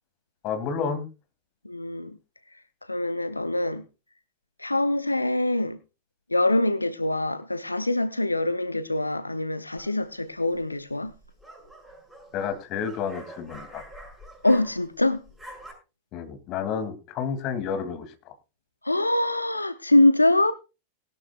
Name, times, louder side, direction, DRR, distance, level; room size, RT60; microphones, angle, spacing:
voice 1, 0.4-1.1 12.3-13.8 16.1-18.1, left 6 dB, 40° left, 2.5 m, -30 dB
voice 2, 1.6-2.2 2.9-3.8 4.6-5.8 6.3-11.1 14.4-15.2 18.8-20.5, left 1 dB, 85° left, 0.6 m, -24 dB
sound 1, 9.8-10.2 11.1-15.0 15.3-15.7, right 1 dB, 5° right, 7.1 m, -46 dB
19.5 x 12.5 x 2.4 m
figure-of-eight pair, 90°, 0 cm